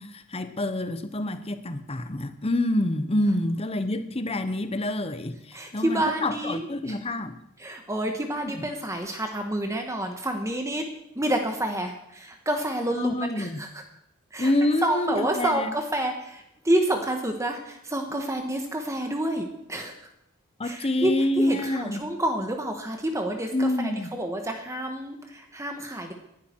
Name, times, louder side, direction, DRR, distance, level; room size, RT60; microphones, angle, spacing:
voice 1, 0.0-7.4 8.4-8.7 13.0-13.6 14.4-15.7 20.6-22.1 23.5-24.2, left 1 dB, 25° left, 1.0 m, -27 dB
voice 2, 5.5-6.6 7.6-10.8 11.1-13.7 14.3-14.5 14.8-19.9 20.6-23.7 24.1-26.1, right 1 dB, 15° right, 1.4 m, -28 dB
19.5 x 12.0 x 4.6 m
head